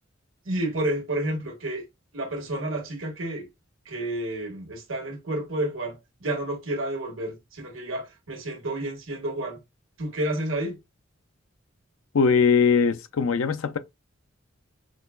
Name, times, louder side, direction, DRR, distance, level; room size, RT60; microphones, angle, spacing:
voice 1, 0.4-1.8 2.1-3.5 3.8-9.6 10.0-10.8, right 1 dB, 90° right, 1.4 m, -30 dB
voice 2, 12.1-13.8, left 5 dB, 90° left, 0.5 m, -21 dB
6.0 x 2.1 x 2.3 m
head